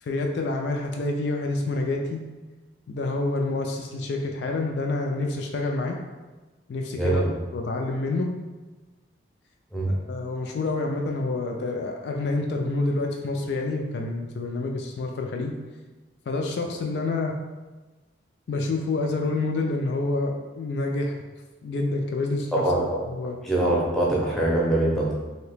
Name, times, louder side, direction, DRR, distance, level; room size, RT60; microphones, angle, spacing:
voice 1, 0.0-2.2 2.9-6.0 6.7-7.2 7.5-8.3 9.9-15.6 16.3-17.3 18.5-21.1 21.6-22.5 23.1-23.4, left 2 dB, 65° left, 2 dB, 0.3 m, -28 dB
voice 2, 7.0-7.3 9.7-9.9 22.5-23.0 23.4-25.1, right 1 dB, ahead, -5 dB, 0.6 m, -23 dB
2.8 x 2.8 x 3.3 m, 1.2 s
head